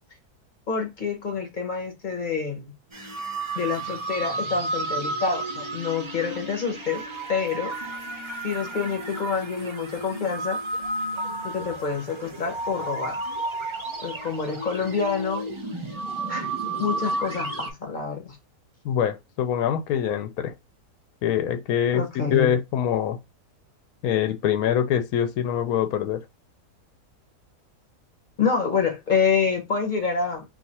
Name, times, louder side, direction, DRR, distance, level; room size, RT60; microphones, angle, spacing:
voice 1, 0.7-2.7 3.5-7.0 7.3-7.7 8.4-10.6 11.4-13.2 14.0-15.4 16.3-16.5 16.8-18.4 21.9-22.5 28.4-30.4, left 5 dB, 40° left, 0.8 m, -27 dB
sound 1, 2.9-17.7, right 2 dB, 40° right, 0.4 m, -32 dB
voice 2, 18.8-20.5 21.2-23.2 24.0-26.2, left 9 dB, 70° left, 1.0 m, -24 dB
2.7 x 2.4 x 4.1 m
omnidirectional pair, 1.7 m